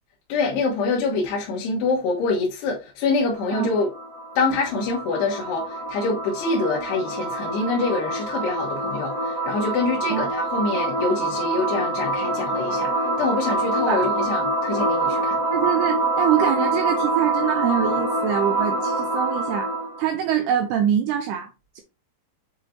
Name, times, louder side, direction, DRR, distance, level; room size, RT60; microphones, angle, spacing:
voice 1, 0.3-3.9 4.4-12.9 13.2-15.4, left 3 dB, 70° left, 3.2 m, -25 dB
sound 1, 3.3-20.0, right 2 dB, 10° right, 1.5 m, -25 dB
voice 2, 10.1-10.4 13.9-14.1 15.5-19.7 20.0-21.5 21.8-21.9, right 10 dB, 80° right, 2.3 m, -24 dB
7.8 x 4.9 x 2.8 m
omnidirectional pair, 5.4 m